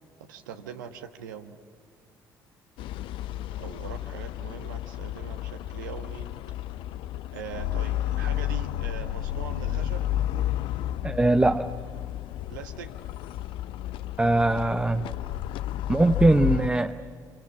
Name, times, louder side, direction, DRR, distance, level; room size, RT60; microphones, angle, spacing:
voice 1, 0.2-1.6 3.6-6.3 7.3-10.1 12.5-12.9, right 8 dB, 70° right, 7 dB, 1.2 m, -41 dB
sound 1, 2.8-16.7, left 13 dB, 55° left, 0.6 m, -32 dB
voice 2, 11.0-11.7 14.2-15.1 15.9-17.0, right 2 dB, 10° right, 8 dB, 0.8 m, -21 dB
27.5 x 25.5 x 7.4 m, 2.2 s
figure-of-eight pair, 55°, 10 cm